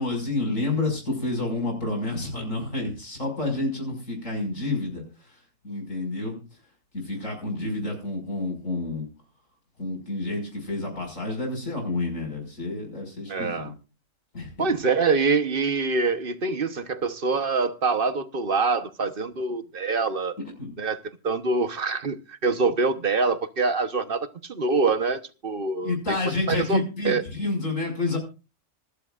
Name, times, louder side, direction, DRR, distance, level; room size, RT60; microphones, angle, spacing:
voice 1, 0.0-5.4 5.6-6.4 6.9-9.1 9.8-13.7 14.3-14.7 20.6-20.7 25.8-28.2, left 2 dB, 80° left, 6.2 m, -29 dB
voice 2, 13.3-13.7 14.6-20.3 20.8-25.9 26.5-27.2, right 4 dB, 45° right, 1.2 m, -25 dB
26.5 x 12.0 x 2.5 m
omnidirectional pair, 1.3 m